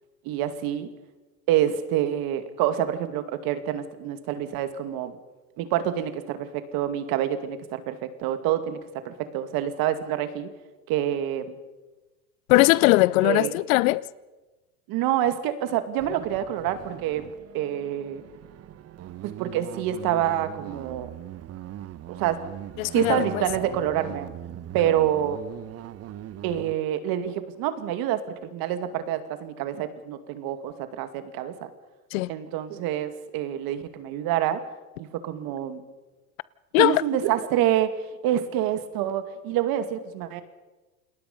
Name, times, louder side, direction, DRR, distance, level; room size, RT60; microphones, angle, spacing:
voice 1, 0.2-0.9 1.5-5.2 5.6-10.5 10.9-11.6 13.2-13.5 14.9-17.2 17.5-18.2 19.2-21.1 22.1-22.4 22.9-24.3 24.7-25.4 26.4-31.7 32.3-34.6 35.0-35.8 36.8-37.9 38.2-40.4, right 11 dB, 55° right, 2.4 m, -27 dB
voice 2, 12.5-14.0 22.8-23.4 32.1-32.3 36.7-37.0, left 20 dB, 70° left, 0.8 m, -20 dB
sound 1, 16.0-26.7, right 12 dB, 35° right, 1.0 m, -40 dB
28.5 x 19.5 x 5.5 m
hypercardioid pair, 105°, 42 cm